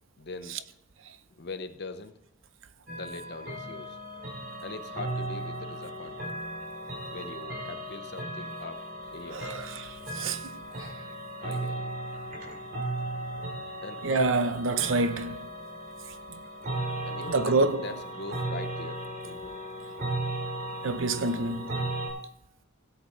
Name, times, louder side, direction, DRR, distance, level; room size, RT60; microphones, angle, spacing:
voice 1, 0.2-0.6 1.3-2.1 2.9-4.0 4.6-6.4 7.1-8.8 9.1-9.6 11.4-11.9 13.1-13.3 13.8-14.0 17.1-19.5, left 3 dB, 55° left, 0.9 m, -42 dB
sound 1, 2.9-22.1, right 1 dB, 45° right, 2.6 m, -36 dB
voice 2, 9.3-9.9 10.1-10.5 10.7-10.9 14.0-15.5 16.3-16.4 17.3-17.9 20.8-21.8, right 3 dB, 70° right, 0.6 m, -27 dB
17.5 x 7.9 x 3.2 m
head